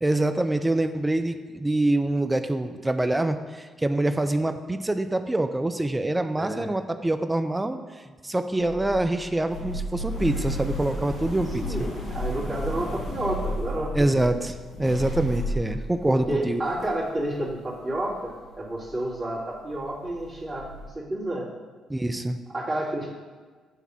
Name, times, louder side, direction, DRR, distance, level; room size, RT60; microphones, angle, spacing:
voice 1, 0.0-7.8 8.2-11.6 13.9-16.6 21.9-22.4, right 1 dB, 15° right, 8 dB, 0.5 m, -25 dB
sound 1, 8.6-18.2 18.4-19.0 19.4-19.5 19.7-20.9, equal, 55° left, 2.2 m, -33 dB
voice 2, 11.3-13.9 16.0-21.5 22.5-23.1, right 1 dB, 35° right, -5 dB, 2.4 m, -30 dB
8.3 x 3.5 x 5.7 m, 1.4 s
figure-of-eight pair, 45°, 0 cm